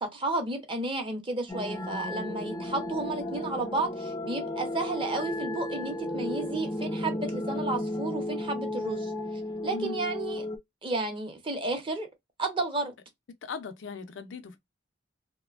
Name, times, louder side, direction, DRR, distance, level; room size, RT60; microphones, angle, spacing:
voice 1, 0.0-9.1 9.6-10.5 10.8-12.1 12.4-12.9, right 2 dB, 25° right, 0.7 m, -32 dB
sound 1, 1.5-10.6, left 1 dB, 15° left, 0.3 m, -34 dB
voice 2, 13.4-14.6, left 4 dB, 75° left, 0.5 m, -38 dB
2.8 x 2.1 x 2.4 m
head